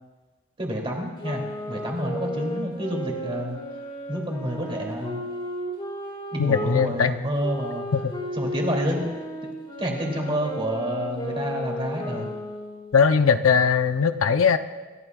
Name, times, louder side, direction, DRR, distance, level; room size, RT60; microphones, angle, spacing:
voice 1, 0.6-3.6 4.1-5.2 6.3-7.8 8.3-9.2 9.8-12.3, equal, 25° right, -1 dB, 2.8 m, -28 dB
sound 1, 1.2-6.8 7.4-12.9, equal, 25° left, 3.4 m, -34 dB
voice 2, 6.4-7.1 7.9-8.1 12.9-14.6, left 6 dB, 85° left, 9 dB, 0.7 m, -20 dB
27.5 x 14.5 x 2.4 m, 1.3 s
head